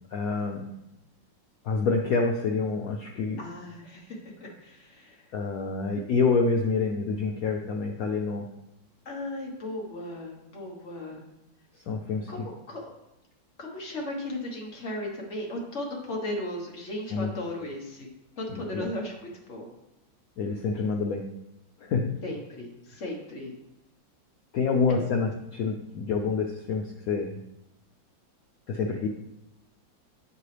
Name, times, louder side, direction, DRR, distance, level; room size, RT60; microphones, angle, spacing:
voice 1, 0.1-0.7 1.6-3.4 5.3-8.5 11.9-12.5 17.1-17.3 18.5-18.9 20.4-21.3 21.8-22.1 24.5-27.3 28.7-29.1, left 4 dB, 90° left, 3 dB, 0.7 m, -27 dB
voice 2, 3.4-5.2 9.0-11.2 12.3-12.4 12.7-12.9 13.6-18.1 18.4-19.2 19.5-19.7 22.2-23.5 24.9-25.0, left 1 dB, 40° left, 0 dB, 1.3 m, -36 dB
8.4 x 4.6 x 3.3 m, 0.88 s
omnidirectional pair, 2.1 m